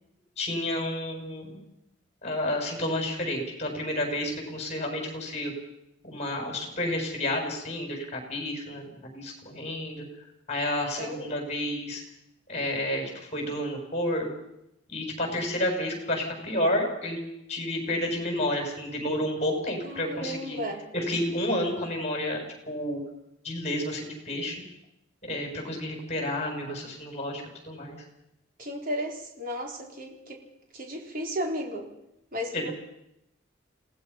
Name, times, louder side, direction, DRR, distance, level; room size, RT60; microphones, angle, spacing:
voice 1, 0.4-1.6 2.2-5.5 6.0-10.0 10.5-12.0 12.5-14.3 14.9-17.2 17.5-20.6 20.9-23.0 23.4-24.6 25.2-28.0 32.5-32.7, left 1 dB, 35° left, 2 dB, 6.9 m, -30 dB
voice 2, 11.0-11.4 19.8-20.8 28.6-30.4 30.7-31.9 32.3-32.7, equal, 45° right, 1 dB, 4.0 m, -34 dB
28.0 x 19.0 x 5.7 m, 0.84 s
head